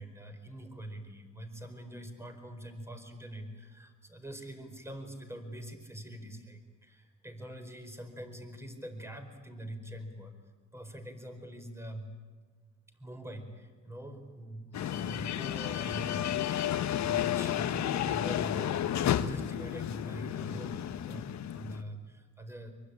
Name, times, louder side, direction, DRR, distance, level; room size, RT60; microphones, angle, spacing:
voice 1, 0.0-10.4 10.7-12.1 12.9-22.7, right 1 dB, 10° right, 6 dB, 4.8 m, -44 dB
sound 1, 14.7-21.8, left 11 dB, 65° left, 1.3 m, -32 dB
25.0 x 22.5 x 10.0 m, 1.4 s
cardioid pair, 90°, 30 cm